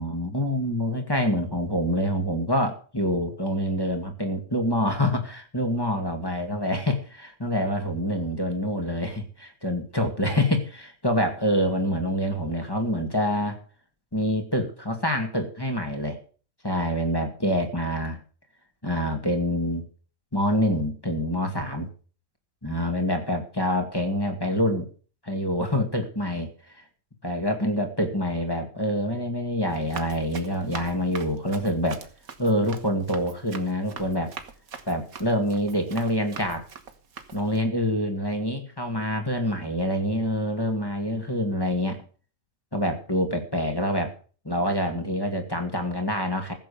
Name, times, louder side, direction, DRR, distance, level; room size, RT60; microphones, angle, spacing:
voice 1, 0.0-13.6 14.1-16.2 16.6-18.2 18.8-19.9 20.3-21.9 22.6-24.9 25.2-26.5 26.8-26.9 27.2-32.0 32.4-34.3 34.9-36.6 37.3-42.0 42.7-44.1 44.4-46.5, left 1 dB, 15° left, 4 dB, 2.2 m, -26 dB
Run, 29.7-37.6, right 6 dB, 75° right, 1.9 m, -43 dB
15.0 x 7.6 x 6.8 m, 0.40 s
omnidirectional pair, 1.5 m